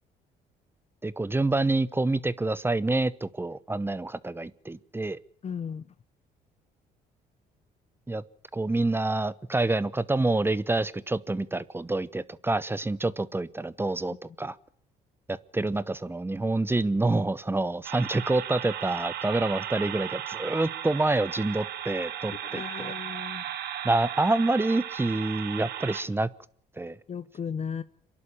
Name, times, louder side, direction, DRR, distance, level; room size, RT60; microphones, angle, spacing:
voice 1, 1.0-5.2 8.1-8.2 8.5-14.6 15.3-22.9 23.8-26.3 26.8-27.0, right 2 dB, 15° right, 18 dB, 0.9 m, -27 dB
voice 2, 5.4-5.9 22.4-23.5 27.1-27.8, left 7 dB, 40° left, 15 dB, 0.8 m, -35 dB
sound 1, 17.8-26.0, right 10 dB, 75° right, 1.8 m, -36 dB
26.5 x 11.5 x 8.8 m, 0.62 s
cardioid pair, 85°, 17 cm